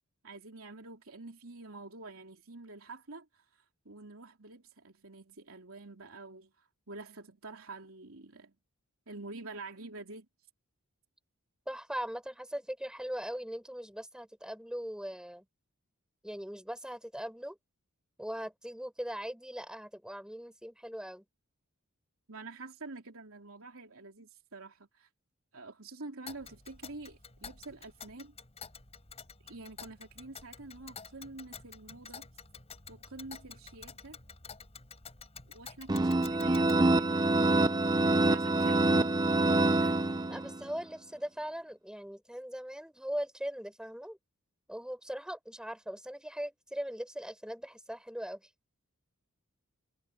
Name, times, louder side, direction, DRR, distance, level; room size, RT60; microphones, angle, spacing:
voice 1, 0.2-3.4 3.8-8.5 9.1-10.3 22.3-25.1 25.5-28.3 29.4-32.3 32.9-34.2 35.5-37.4 38.2-39.1 39.5-40.0, right 3 dB, 70° right, 3.3 m, -47 dB
voice 2, 11.7-15.4 16.2-17.6 18.2-21.2 40.3-44.2 44.7-48.5, equal, 5° right, 6.3 m, -40 dB
Tick, 26.3-36.8, left 6 dB, 30° left, 4.5 m, -50 dB
sound 1, 35.9-40.6, right 2 dB, 20° right, 0.6 m, -26 dB
head